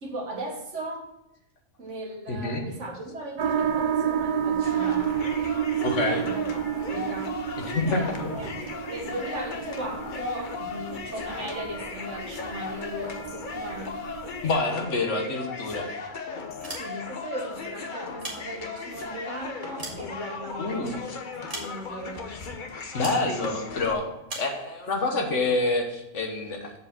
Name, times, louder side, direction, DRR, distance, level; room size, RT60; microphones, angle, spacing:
voice 1, 0.0-1.1 1.8-5.1 6.2-7.4 7.8-8.5 8.9-14.0 16.6-22.3 25.2-25.3, right 1 dB, 75° right, 2 dB, 1.8 m, -37 dB
voice 2, 2.3-2.6 5.8-6.3 7.6-8.3 14.4-15.9 20.6-21.0 22.9-24.0 24.3-26.7, left 3 dB, 80° left, 3 dB, 1.6 m, -27 dB
sound 1, 3.4-14.5, right 9 dB, 50° right, 0.6 m, -30 dB
sound 2, 4.6-23.9, left 5 dB, 45° left, 0.9 m, -37 dB
sound 3, 16.6-17.3 18.0-19.0 19.5-20.7 21.5-22.1 23.0-23.3 24.3-24.6, right 2 dB, 30° right, 1.8 m, -39 dB
7.3 x 4.8 x 6.0 m, 0.89 s
omnidirectional pair, 1.2 m